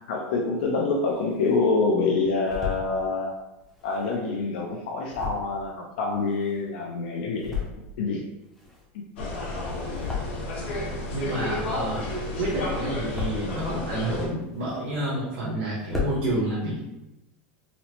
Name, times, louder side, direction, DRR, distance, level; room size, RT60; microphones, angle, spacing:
voice 1, 0.1-3.3 3.8-7.6 8.0-8.2 8.9-9.0, left 3 dB, 70° left, 0 dB, 0.4 m, -26 dB
sound 1, 1.0-1.7 2.1-2.9 3.6-6.8 7.2-8.0 8.3-10.8 11.0-12.3 12.6-13.6 14.1-15.2 15.5-15.6 15.8-16.2, left 5 dB, ahead, 0.5 m, -35 dB
sound 2, 9.2-14.3, left 2 dB, 90° left, 1.0 m, -31 dB
voice 2, 11.1-12.0 12.4-16.9, right 1 dB, 80° right, -7 dB, 1.1 m, -29 dB
4.0 x 2.1 x 2.8 m, 0.94 s
supercardioid pair, 170°, 6 cm